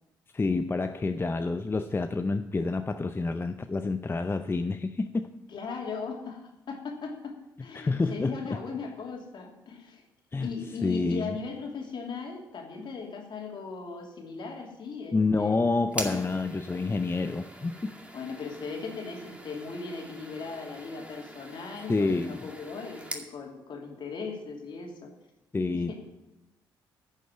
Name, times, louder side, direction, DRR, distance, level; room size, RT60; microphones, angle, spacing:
voice 1, 0.3-5.3 7.7-8.4 10.3-10.5 10.8-11.4 15.1-18.0 21.9-22.4 25.5-25.9, left 3 dB, 25° left, 9 dB, 0.6 m, -28 dB
voice 2, 5.5-7.3 7.6-10.0 10.4-15.6 16.0-16.2 18.1-25.1 25.7-25.9, left 4 dB, 55° left, 1 dB, 2.8 m, -38 dB
sound 1, 15.9-23.3, right 1 dB, 15° right, 2.2 m, -42 dB
10.5 x 6.4 x 8.9 m, 0.93 s
hypercardioid pair, 45°, 10 cm